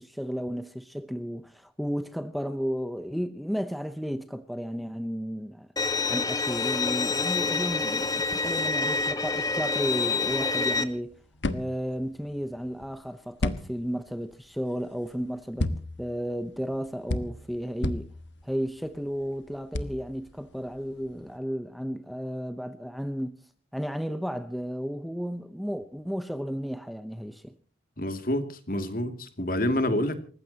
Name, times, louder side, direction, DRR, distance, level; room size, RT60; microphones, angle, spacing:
voice 1, 0.0-5.7 6.1-11.2 11.5-15.7 16.0-18.1 18.4-23.4 23.7-27.6, equal, ahead, 0.7 m, -33 dB
Bowed string instrument, 5.8-10.8, left 4 dB, 20° left, 1.4 m, -27 dB
sound 1, 10.9-21.4, left 1 dB, 85° left, 1.3 m, -35 dB
voice 2, 28.0-30.2, left 1 dB, 50° left, 2.5 m, -28 dB
28.5 x 15.5 x 2.9 m
head